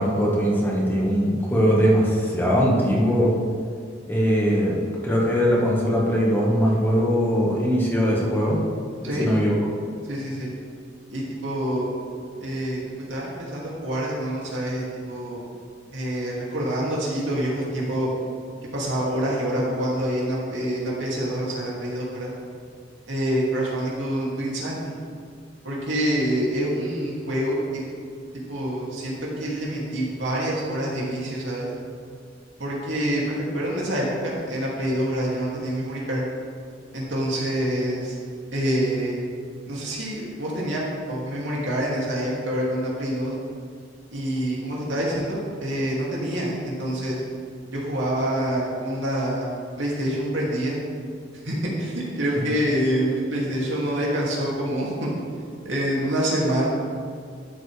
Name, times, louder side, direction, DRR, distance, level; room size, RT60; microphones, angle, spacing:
voice 1, 0.0-3.3 4.0-8.6 9.0-9.5, equal, 10° left, -4 dB, 1.6 m, -21 dB
voice 2, 10.1-10.5 11.1-11.9 12.4-12.8 13.1-15.4 15.9-18.1 18.7-22.3 23.1-24.8 25.6-27.8 28.5-31.7 32.6-36.2 36.9-38.2 38.5-39.2 39.7-43.3 44.1-47.2 47.7-49.5 49.8-50.8 51.4-55.1 55.6-56.7, right 1 dB, 75° right, -5 dB, 2.6 m, -26 dB
12.5 x 7.4 x 3.4 m, 2.1 s
head